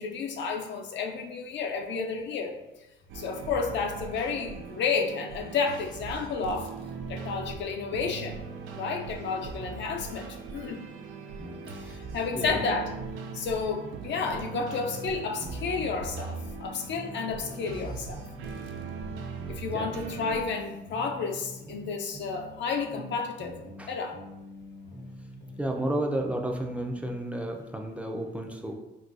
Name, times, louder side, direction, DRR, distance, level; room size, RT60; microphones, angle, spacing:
voice 1, 0.0-2.5 3.1-6.7 7.1-8.4 8.8-10.9 11.8-12.9 13.3-18.2 19.5-23.6 23.9-24.2, left 5 dB, 65° left, 2 dB, 0.4 m, -31 dB
sound 1, 3.1-20.4, right 5 dB, 85° right, 0.4 m, -40 dB
sound 2, 11.4-13.9 14.1-17.9 18.1-21.9 22.1-25.9 26.1-27.2, left 1 dB, 60° right, 1.0 m, -45 dB
voice 2, 25.6-28.7, right 1 dB, 5° right, 2 dB, 0.4 m, -32 dB
4.0 x 2.2 x 2.4 m, 0.98 s
cardioid pair, 90°, 20 cm